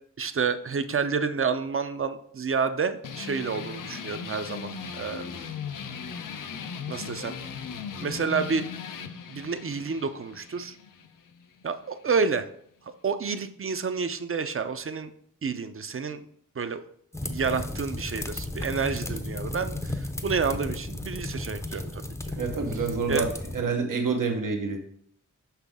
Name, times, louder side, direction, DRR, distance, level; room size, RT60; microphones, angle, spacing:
voice 1, 0.2-5.5 6.9-7.4 8.0-8.6 9.3-10.8 11.6-12.4 13.0-15.1 15.4-16.2 16.6-16.8 17.2-22.4 23.1-23.3, right 5 dB, 45° right, 10 dB, 0.5 m, -29 dB
sound 1, 3.0-12.1, left 6 dB, 90° left, 0.6 m, -38 dB
sound 2, 17.1-23.6, left 1 dB, 10° left, 0.5 m, -34 dB
voice 2, 22.4-24.8, right 4 dB, 85° right, 3 dB, 0.9 m, -28 dB
6.0 x 5.7 x 3.5 m, 0.64 s
wide cardioid pair, 90°, 31 cm